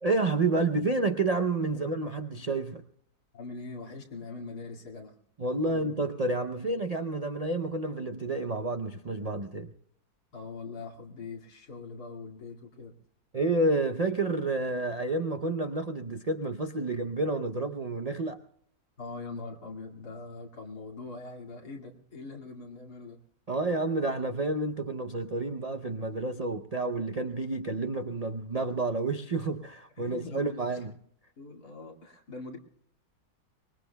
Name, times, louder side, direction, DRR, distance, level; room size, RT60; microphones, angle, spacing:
voice 1, 0.0-2.8 5.4-9.7 13.3-18.4 23.5-31.0, right 2 dB, 50° right, 0.4 m, -29 dB
voice 2, 3.3-5.2 5.7-5.9 10.3-12.9 19.0-23.2 30.0-30.8 31.4-32.6, left 3 dB, 80° left, 2.8 m, -42 dB
24.5 x 21.5 x 2.2 m
omnidirectional pair, 1.7 m